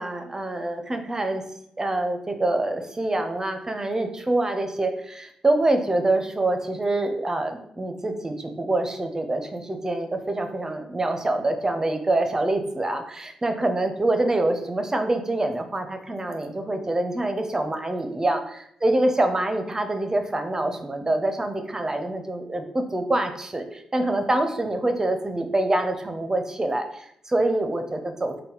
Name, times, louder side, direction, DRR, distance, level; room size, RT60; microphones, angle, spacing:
voice 1, 0.0-1.4 1.8-28.4, right 2 dB, 25° right, 6 dB, 0.6 m, -25 dB
4.0 x 2.2 x 3.9 m, 0.73 s
cardioid pair, 60°, 2 cm